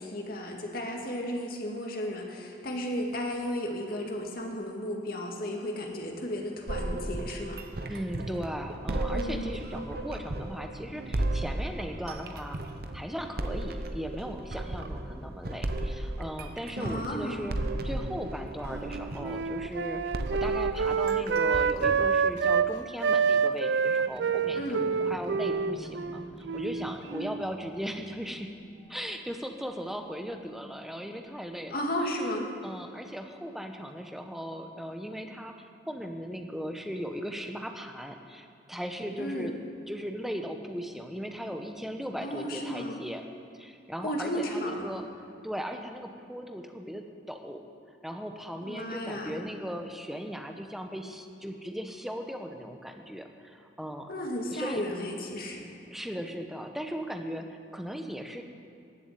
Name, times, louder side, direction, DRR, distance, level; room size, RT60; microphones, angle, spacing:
voice 1, 0.0-7.6 9.1-9.6 16.8-17.4 24.6-24.9 31.7-32.5 39.2-39.5 42.2-43.0 44.0-44.9 48.6-49.4 54.1-55.7, equal, 55° left, 1 dB, 2.1 m, -34 dB
sound 1, 6.7-22.1, right 1 dB, 55° right, 0.9 m, -35 dB
voice 2, 7.9-12.6 12.9-17.6 17.8-28.5 28.9-31.8 32.6-39.5 39.9-43.2 43.6-45.1 45.4-47.6 48.0-54.1 54.5-54.8 55.9-58.4, equal, ahead, 4 dB, 1.0 m, -38 dB
Wind instrument woodwind instrument, 18.7-22.7 23.0-27.5, right 6 dB, 75° right, 0.5 m, -27 dB
sound 2, 23.7-31.1 31.7-31.8, equal, 25° left, 2.5 m, -49 dB
15.0 x 7.2 x 9.9 m, 2.5 s
head